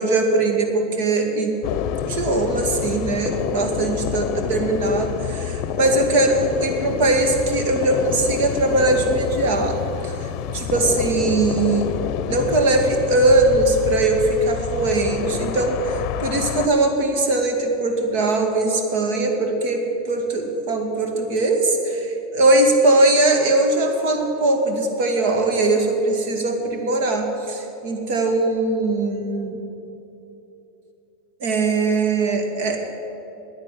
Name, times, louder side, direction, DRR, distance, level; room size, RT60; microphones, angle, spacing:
voice 1, 0.0-1.5 2.1-9.8 10.0-10.1 10.5-11.9 12.3-29.6 31.4-32.8, right 2 dB, 65° right, 4 dB, 2.2 m, -20 dB
sound 1, 1.6-16.7, left 9 dB, 50° left, 0.7 m, -28 dB
10.5 x 9.5 x 9.4 m, 2.9 s
supercardioid pair, 130°, 0 cm